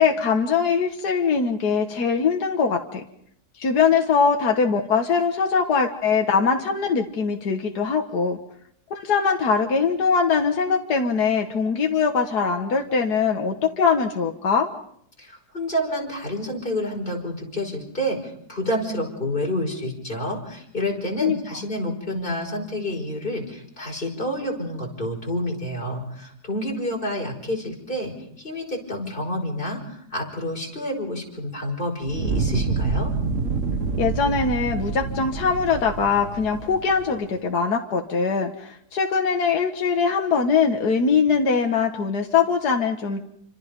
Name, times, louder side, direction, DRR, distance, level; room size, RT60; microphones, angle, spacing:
voice 1, 0.0-3.0 3.6-8.4 9.0-14.7 21.2-21.4 34.0-43.2, left 5 dB, 80° left, 3 dB, 2.0 m, -22 dB
voice 2, 15.2-33.1, left 1 dB, 30° left, 1 dB, 5.7 m, -29 dB
Fire, 32.0-37.2, right 4 dB, 50° right, 1.7 m, -27 dB
28.0 x 26.0 x 5.3 m, 0.69 s
omnidirectional pair, 1.7 m